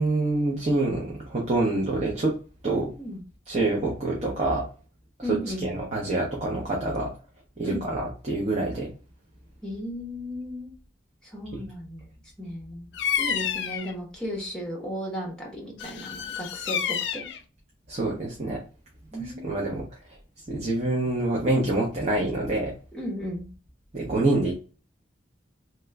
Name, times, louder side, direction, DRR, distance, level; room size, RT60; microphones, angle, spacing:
voice 1, 0.0-2.4 2.6-2.9 3.5-4.6 5.3-7.1 7.6-8.9 11.5-11.6 17.9-18.6 19.2-19.8 20.5-22.7 23.9-24.6, right 2 dB, 35° right, -2 dB, 0.6 m, -26 dB
voice 2, 5.2-5.7 7.6-7.9 9.6-10.7 11.2-12.1 12.4-12.9 13.2-17.3 19.1-19.7 22.9-23.5, equal, 5° left, -2 dB, 0.9 m, -35 dB
Bird vocalization bird call bird song, 12.9-13.9 15.8-17.4, left 8 dB, 70° left, 0.4 m, -29 dB
2.9 x 2.2 x 3.3 m, 0.36 s
head